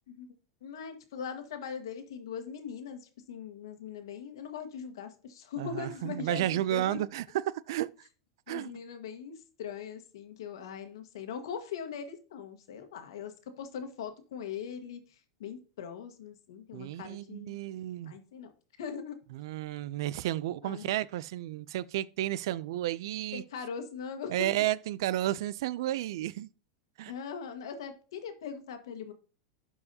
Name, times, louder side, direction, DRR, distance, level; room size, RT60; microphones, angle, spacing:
voice 1, 0.6-3.0 3.3-7.0 8.5-15.0 15.4-17.6 18.0-18.5 18.8-19.2 20.6-20.9 23.3-24.6 27.1-29.1, left 7 dB, 80° left, 1.5 m, -40 dB
voice 2, 5.6-7.9 8.5-8.7 16.7-18.1 19.3-23.4 24.3-26.5 27.0-27.1, right 14 dB, 70° right, 0.4 m, -32 dB
12.0 x 4.7 x 2.8 m
supercardioid pair, 130°, 2 cm